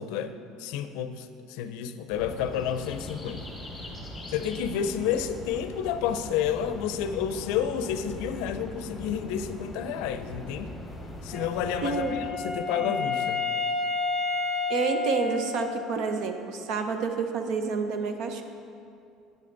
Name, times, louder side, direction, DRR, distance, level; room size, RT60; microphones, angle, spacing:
voice 1, 0.0-3.4 4.3-10.7 11.2-13.5, left 8 dB, 75° left, 10 dB, 0.5 m, -30 dB
sound 1, 2.1-12.3, left 1 dB, 10° left, 1.5 m, -41 dB
Wind instrument woodwind instrument, 11.3-16.1, left 4 dB, 10° right, 1.3 m, -30 dB
voice 2, 11.8-12.3 12.8-12.9 14.7-18.4, right 5 dB, 55° right, 6 dB, 0.7 m, -29 dB
9.0 x 8.7 x 3.9 m, 2.5 s
cardioid pair, 155°, 0 cm